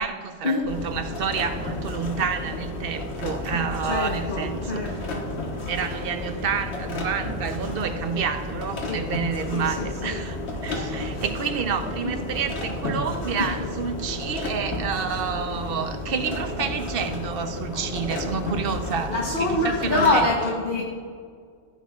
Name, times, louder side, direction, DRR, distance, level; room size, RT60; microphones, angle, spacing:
voice 1, 0.0-5.2 5.7-10.4 10.6-20.6, right 6 dB, 55° right, 8 dB, 0.8 m, -29 dB
sound 1, 0.7-20.3, left 2 dB, 60° left, 1.6 m, -32 dB
voice 2, 3.9-5.2 8.9-9.0 9.5-10.2 11.1-11.2 13.4-13.5 19.1-20.8, left 2 dB, 45° left, -2 dB, 1.2 m, -25 dB
15.0 x 9.3 x 2.4 m, 2.1 s
omnidirectional pair, 1.3 m